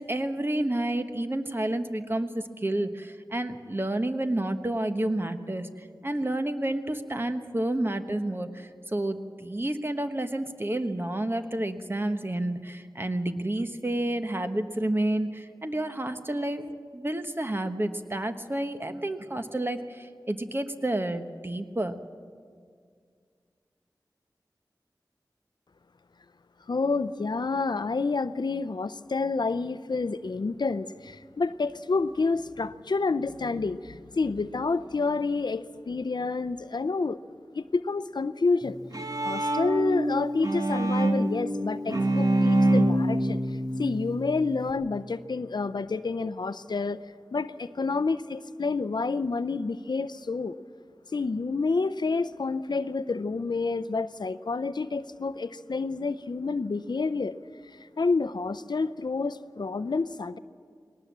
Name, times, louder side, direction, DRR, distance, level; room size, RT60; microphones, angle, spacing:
voice 1, 0.0-21.9, right 1 dB, 30° right, 8 dB, 1.2 m, -30 dB
voice 2, 26.7-37.2 37.5-38.8 39.2-43.4 43.8-47.0 47.3-50.6 51.1-57.4 58.0-60.4, left 4 dB, 75° left, 14 dB, 0.5 m, -29 dB
Bowed string instrument, 38.6-44.7, right 1 dB, 55° right, 1.5 m, -26 dB
19.5 x 18.5 x 7.4 m, 2.1 s
wide cardioid pair, 60°, 8 cm